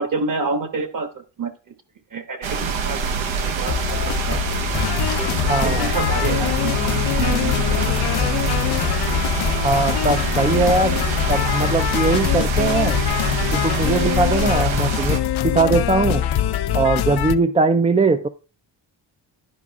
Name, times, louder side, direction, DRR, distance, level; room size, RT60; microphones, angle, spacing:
voice 1, 0.0-1.7 2.1-4.4 5.2-8.3, right 4 dB, 45° right, 1.3 m, -29 dB
sound 1, 2.4-15.2, right 5 dB, 85° right, 1.2 m, -25 dB
sound 2, 3.7-17.4, left 9 dB, 80° left, 0.9 m, -27 dB
sound 3, 4.7-17.3, left 13 dB, 55° left, 0.5 m, -24 dB
voice 2, 5.5-5.9 9.6-11.0 11.3-13.0 13.5-15.2 15.4-16.2 16.7-18.3, right 3 dB, 15° right, 0.4 m, -20 dB
11.0 x 5.0 x 3.5 m
cardioid pair, 115°, 46 cm